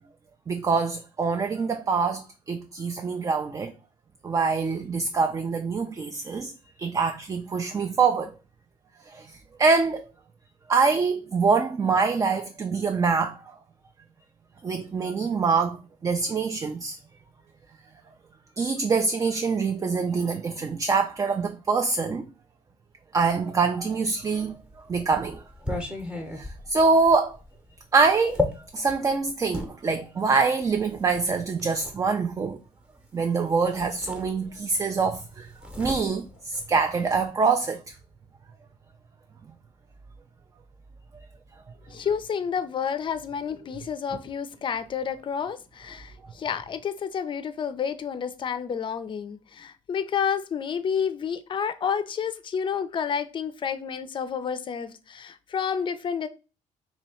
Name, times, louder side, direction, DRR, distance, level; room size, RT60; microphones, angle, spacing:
voice 1, 0.5-3.7 4.2-6.5 6.8-8.3 9.1-10.1 10.7-13.4 14.6-17.0 18.6-22.3 23.1-24.6 24.9-25.4 26.4-27.4 27.9-28.4 28.7-32.6 33.1-35.5 35.8-37.9, right 4 dB, 25° right, 0.4 m, -25 dB
sound 1, 24.4-29.7 30.6-32.0 33.2-33.3 33.6-34.8 35.0-37.3, left 2 dB, 5° right, 0.8 m, -34 dB
voice 2, 41.9-56.3, left 7 dB, 40° left, 0.5 m, -30 dB
2.9 x 2.7 x 4.2 m
cardioid pair, 100°, 14 cm